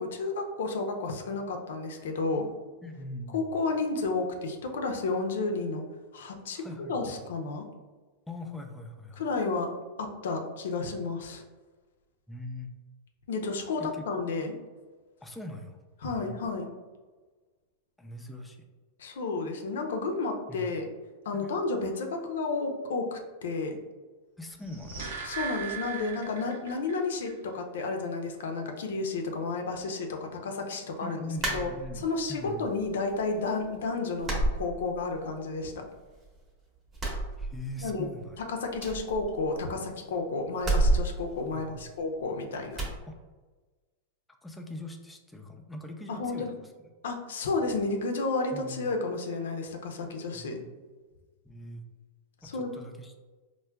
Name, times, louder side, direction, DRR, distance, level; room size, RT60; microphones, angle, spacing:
voice 1, 0.0-2.5 3.3-5.8 6.1-7.6 9.2-9.7 10.0-11.4 13.3-14.6 16.0-16.7 19.0-20.9 21.2-23.8 25.2-31.2 31.5-31.7 32.0-35.8 37.8-38.1 38.4-42.9 46.1-46.5 47.0-50.6 52.4-52.7, left 3 dB, 80° left, 3 dB, 0.5 m, -31 dB
voice 2, 2.8-3.5 6.5-7.2 8.3-9.3 12.3-12.7 13.8-14.0 15.2-15.8 16.0-16.3 18.0-18.7 20.5-20.7 21.3-21.5 24.4-25.1 31.0-32.7 37.4-38.5 41.5-41.9 43.1-43.2 44.4-46.5 46.8-46.9 48.5-48.9 50.3-50.6 51.4-51.8 52.4-53.2, left 1 dB, 5° left, 3 dB, 0.3 m, -41 dB
sound 1, 24.5-27.0 27.3-27.4, right 6 dB, 80° right, 0.8 m, -38 dB
sound 2, 31.4-32.3 32.7-33.4 33.6-33.8 34.2-35.3 35.6-36.5 36.9-38.0 38.3-38.4 38.7-39.9 40.6-42.2 42.7-43.0, right 2 dB, 20° right, 0.8 m, -30 dB
4.5 x 2.1 x 2.2 m, 1.3 s
hypercardioid pair, 135°, 0 cm